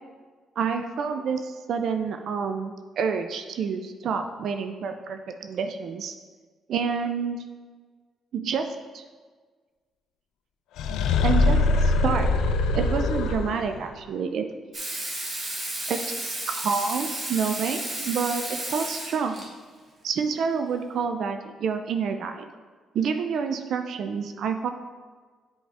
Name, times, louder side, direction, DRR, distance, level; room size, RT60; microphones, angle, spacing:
voice 1, 0.6-6.1 6.7-7.4 8.3-8.7 8.9-9.0 11.2-12.3 12.7-14.5 15.9-19.4 20.0-22.5 22.9-24.7, right 6 dB, 70° right, 7 dB, 0.4 m, -28 dB
sound 1, 10.8-13.8, left 3 dB, 90° left, 0.5 m, -22 dB
Water tap faucet / Sink (filling or washing), 14.7-19.5 21.0-21.1, right 1 dB, 40° right, 1.8 m, -33 dB
7.9 x 4.8 x 3.4 m, 1.5 s
cardioid pair, 90°, 0 cm